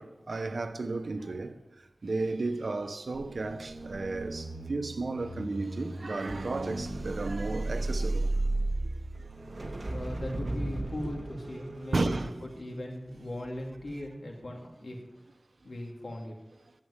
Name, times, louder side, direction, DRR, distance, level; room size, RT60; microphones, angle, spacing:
voice 1, 0.0-8.4 8.8-8.9 9.2-9.3 9.6-9.9 11.9-12.3, right 3 dB, 80° right, 1.0 m, -33 dB
sound 1, 3.1-13.4 13.8-14.1, right 2 dB, 50° right, 1.6 m, -35 dB
voice 2, 9.9-15.0 15.6-16.4, left 1 dB, 90° left, 2.7 m, -39 dB
11.0 x 7.7 x 9.8 m
wide cardioid pair, 65°, 0 cm